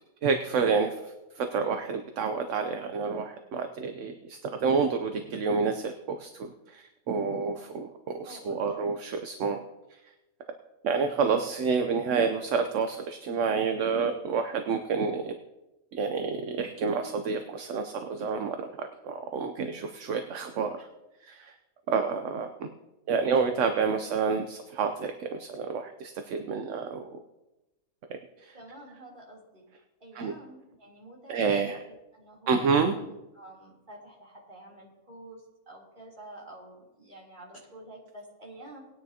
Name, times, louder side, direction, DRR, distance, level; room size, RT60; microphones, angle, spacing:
voice 1, 0.2-9.6 10.8-15.3 15.9-20.9 21.2-21.5 21.9-22.7 23.1-27.0 28.4-28.5 30.2-30.3 31.3-31.8 32.5-32.9, right 5 dB, 65° right, 7 dB, 1.0 m, -29 dB
voice 2, 8.3-8.8 21.9-22.1 28.5-29.6 30.0-38.8, right 1 dB, 35° right, -4 dB, 3.5 m, -49 dB
19.5 x 9.8 x 2.8 m, 1.0 s
omnidirectional pair, 1.5 m